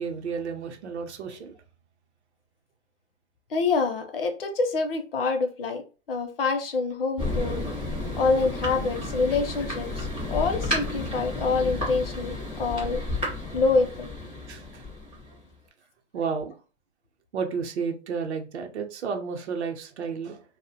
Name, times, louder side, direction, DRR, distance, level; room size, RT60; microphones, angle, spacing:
voice 1, 0.0-1.5 14.5-14.8 16.1-16.6 17.3-20.4, right 5 dB, 65° right, 0.6 m, -32 dB
voice 2, 3.5-5.8 6.1-7.6 8.1-13.0 13.5-14.1, left 4 dB, 50° left, 0.5 m, -26 dB
Thunder, 7.2-15.5, left 2 dB, 10° right, 0.4 m, -32 dB
2.4 x 2.1 x 2.7 m
hypercardioid pair, 175°, 36 cm